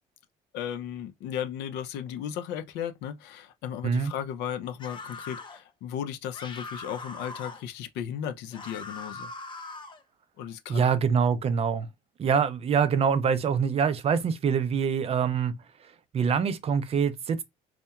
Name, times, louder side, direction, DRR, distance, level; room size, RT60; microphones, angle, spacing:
voice 1, 0.5-9.3 10.4-10.8, left 9 dB, 85° left, 0.4 m, -35 dB
sound 1, 4.8-5.6 6.3-7.6 8.5-10.0, left 3 dB, 30° left, 0.5 m, -41 dB
voice 2, 10.7-11.9 12.2-15.5 15.8-17.4, right 6 dB, 35° right, 0.4 m, -25 dB
2.8 x 2.1 x 2.2 m
cardioid pair, 110°, 17 cm